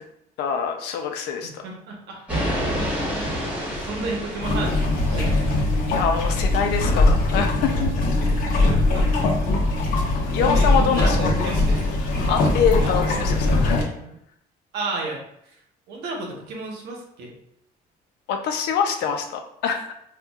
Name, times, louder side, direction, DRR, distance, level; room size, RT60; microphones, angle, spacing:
voice 1, 0.4-1.6 5.9-7.9 10.3-11.5 12.3-13.8 18.3-19.9, left 6 dB, 85° left, 4 dB, 0.6 m, -25 dB
voice 2, 1.6-2.2 2.7-3.4 3.8-5.5 8.6-9.1 10.5-11.9 12.8-13.1 14.0-14.1 14.7-15.2 15.9-17.3, right 3 dB, 80° right, 0 dB, 0.9 m, -33 dB
sound 1, 2.3-6.3, equal, 10° right, 1.3 m, -29 dB
sound 2, 4.4-13.8, left 2 dB, 60° left, 0.9 m, -21 dB
4.3 x 2.4 x 2.3 m, 0.75 s
cardioid pair, 110°, 17 cm